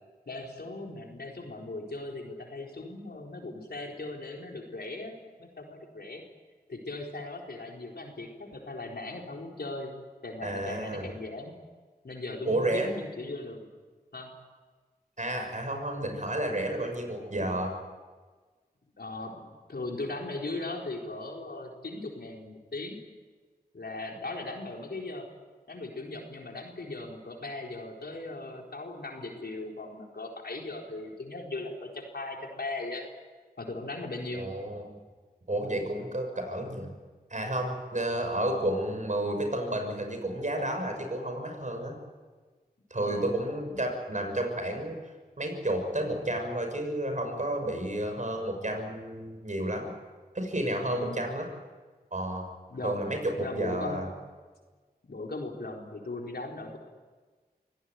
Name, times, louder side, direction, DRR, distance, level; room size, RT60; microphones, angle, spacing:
voice 1, 0.3-5.1 5.4-6.2 6.7-9.9 10.2-11.5 12.0-13.7 14.1-14.3 17.0-17.2 19.0-23.0 23.7-25.3 25.7-33.0 33.6-34.5 43.0-43.3 43.7-43.8 51.0-51.3 52.7-53.0 53.4-54.1 55.1-56.8, left 2 dB, 75° left, 1 dB, 4.2 m, -38 dB
voice 2, 10.4-11.1 12.4-12.9 15.2-17.7 34.3-34.9 35.5-36.9 37.3-42.0 42.9-45.0 45.4-49.9 50.3-51.5 52.1-52.4 52.8-54.1, right 1 dB, 50° right, 4 dB, 6.4 m, -31 dB
24.5 x 16.5 x 9.4 m, 1.4 s
cardioid pair, 45°, 17 cm